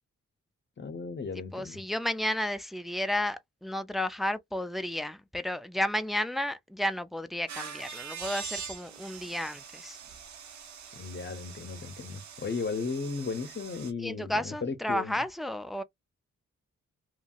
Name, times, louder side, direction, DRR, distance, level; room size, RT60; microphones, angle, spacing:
voice 1, 0.8-1.8 10.9-15.2, left 4 dB, 40° left, 0.7 m, -35 dB
voice 2, 1.5-10.0 14.0-15.8, left 1 dB, ahead, 0.3 m, -32 dB
sound 1, 7.5-13.9, right 7 dB, 75° right, 0.7 m, -43 dB
2.9 x 2.7 x 2.3 m
wide cardioid pair, 100°, 29 cm